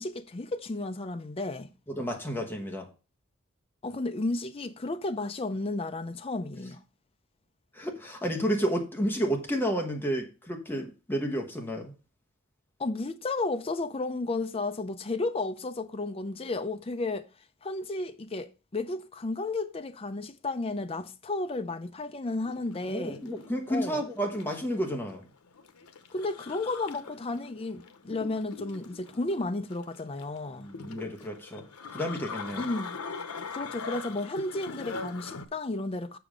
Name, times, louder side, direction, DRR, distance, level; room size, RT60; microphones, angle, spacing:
voice 1, 0.0-1.7 3.8-6.8 12.8-17.3 17.6-23.2 23.7-24.0 26.1-30.7 32.6-32.9 33.5-36.2, left 2 dB, 25° left, 0.5 m, -33 dB
voice 2, 1.9-2.9 7.7-11.9 22.9-25.2 30.6-31.7 31.9-32.7, equal, 10° left, 1.1 m, -31 dB
sound 1, 22.3-35.5, left 4 dB, 90° left, 0.8 m, -42 dB
7.0 x 6.0 x 5.0 m
head